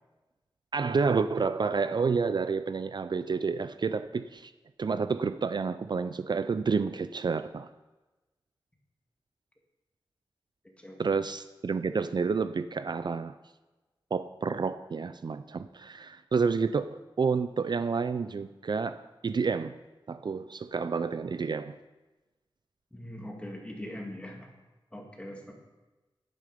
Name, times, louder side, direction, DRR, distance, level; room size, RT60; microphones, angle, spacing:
voice 1, 0.7-4.5 4.8-7.7 11.0-13.3 14.1-19.8 20.1-21.8, right 5 dB, 50° right, 11 dB, 0.4 m, -29 dB
voice 2, 10.6-11.0 22.9-24.5 24.9-25.5, left 1 dB, 15° left, 1 dB, 2.0 m, -42 dB
10.5 x 9.9 x 5.1 m, 1.2 s
wide cardioid pair, 100°, 9 cm